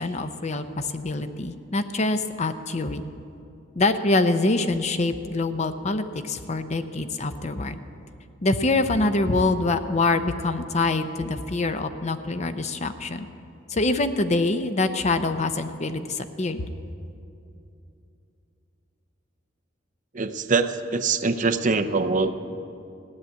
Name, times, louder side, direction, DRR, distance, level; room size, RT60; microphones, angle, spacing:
voice 1, 0.0-3.0 3.8-7.8 8.4-13.3 13.7-16.7, left 2 dB, 35° left, 9 dB, 0.6 m, -25 dB
voice 2, 20.1-22.3, right 4 dB, 40° right, 10 dB, 0.6 m, -23 dB
16.0 x 9.8 x 8.0 m, 2.7 s
head